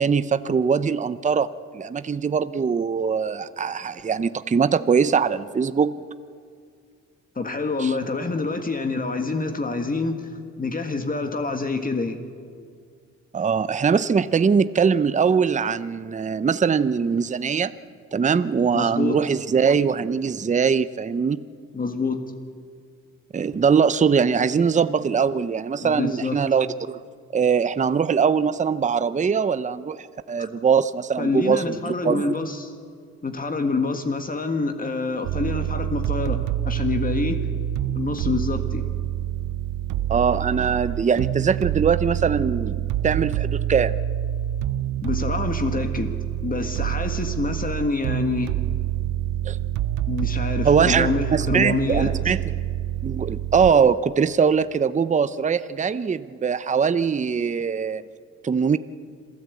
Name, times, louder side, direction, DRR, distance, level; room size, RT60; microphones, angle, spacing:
voice 1, 0.0-1.5 1.7-6.0 7.8-7.9 13.3-17.7 18.1-21.4 23.3-27.0 27.3-32.2 40.1-43.9 49.4-49.6 50.6-52.4 53.0-58.0 58.4-58.8, right 6 dB, 25° right, 14 dB, 0.7 m, -22 dB
voice 2, 7.4-10.3 10.6-12.2 18.7-19.2 21.7-22.3 25.8-26.4 30.4-30.5 31.2-32.7 33.2-37.4 38.0-38.9 45.0-46.1 46.4-48.5 50.1-52.1, left 3 dB, 30° left, 6 dB, 1.8 m, -26 dB
sound 1, 35.2-53.7, right 12 dB, 85° right, 0.6 m, -27 dB
26.5 x 14.5 x 8.5 m, 2.2 s
cardioid pair, 90°, 30 cm